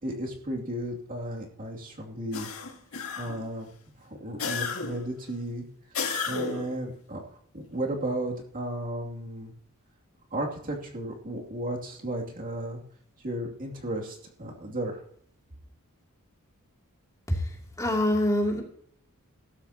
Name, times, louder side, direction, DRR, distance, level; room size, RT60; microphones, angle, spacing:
voice 1, 0.0-2.5 3.2-3.7 4.0-5.6 6.3-7.2 7.5-9.5 10.3-12.8 13.2-15.0, right 1 dB, 40° right, -1 dB, 2.6 m, -34 dB
sound 1, 2.3-3.5 4.4-5.1 5.9-6.8, left 5 dB, 70° left, 1.9 m, -33 dB
voice 2, 17.8-18.6, left 1 dB, 15° left, 0 dB, 2.7 m, -24 dB
16.0 x 14.0 x 2.9 m, 0.63 s
head